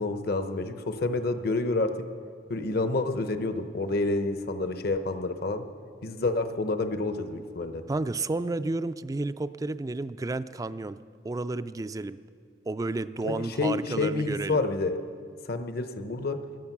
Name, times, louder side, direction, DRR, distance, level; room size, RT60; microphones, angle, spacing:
voice 1, 0.0-1.9 2.5-5.6 6.0-7.8 13.2-15.0 15.5-16.4, left 2 dB, 55° left, 8 dB, 0.9 m, -28 dB
voice 2, 7.9-11.0 11.2-12.2 12.7-14.6, right 2 dB, 20° right, 13 dB, 0.3 m, -31 dB
17.5 x 12.0 x 6.0 m, 2.1 s
head